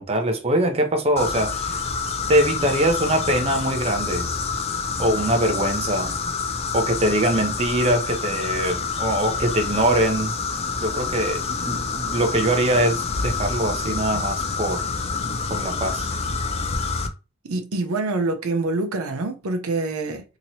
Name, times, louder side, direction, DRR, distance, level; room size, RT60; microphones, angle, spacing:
voice 1, 0.0-1.8 2.3-4.3 5.0-6.2 6.7-10.3 10.8-14.8 15.5-16.1, right 1 dB, 30° right, 0.5 m, -23 dB
sound 1, 1.2-17.1, left 5 dB, 30° left, 0.4 m, -27 dB
voice 2, 17.4-20.2, right 2 dB, 85° right, 0.6 m, -25 dB
2.9 x 2.9 x 2.7 m
head